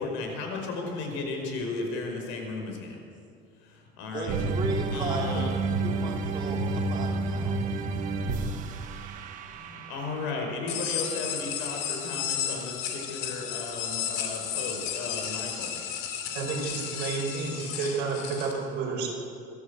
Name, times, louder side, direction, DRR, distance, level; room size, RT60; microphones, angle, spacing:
voice 1, 0.0-3.0 3.6-4.4 4.9-5.5 9.5-15.7, left 3 dB, 70° left, 2 dB, 5.3 m, -35 dB
voice 2, 4.1-7.6, right 3 dB, 25° right, 0 dB, 2.8 m, -35 dB
sound 1, 4.3-10.6, right 3 dB, 40° right, 1.5 m, -30 dB
sound 2, 10.7-18.5, left 9 dB, 90° left, 3.2 m, -33 dB
voice 3, 16.3-19.1, right 4 dB, 55° right, 0 dB, 5.5 m, -31 dB
26.0 x 13.0 x 8.3 m, 2.4 s
cardioid pair, 175°, 20 cm